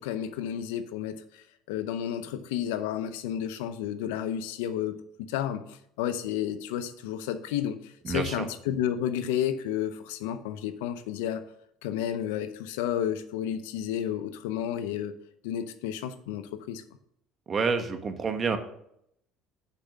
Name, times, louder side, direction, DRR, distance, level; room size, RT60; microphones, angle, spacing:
voice 1, 0.0-5.6 6.0-11.4 11.8-15.1 15.4-16.8, left 10 dB, 85° left, 11 dB, 0.7 m, -31 dB
voice 2, 8.0-8.5 17.5-18.6, right 5 dB, 35° right, 7 dB, 1.3 m, -28 dB
6.9 x 5.8 x 6.1 m, 0.73 s
supercardioid pair, 90°, 0 cm